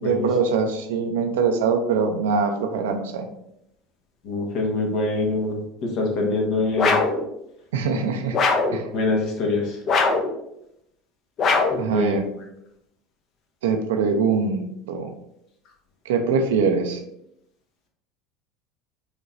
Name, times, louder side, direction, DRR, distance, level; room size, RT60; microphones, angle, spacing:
voice 1, 0.0-3.3 7.7-8.4 8.7-8.9 11.8-12.3 13.6-15.1 16.1-17.0, right 5 dB, 80° right, 6 dB, 0.6 m, -23 dB
voice 2, 4.2-7.0 8.9-9.8 11.7-12.2, left 3 dB, 60° left, 0 dB, 1.2 m, -24 dB
sound 1, 6.8-7.2 8.3-8.8 9.9-10.3 11.4-11.9, left 4 dB, 45° left, 0.7 m, -21 dB
5.1 x 3.0 x 2.6 m, 0.78 s
hypercardioid pair, 80°, 0 cm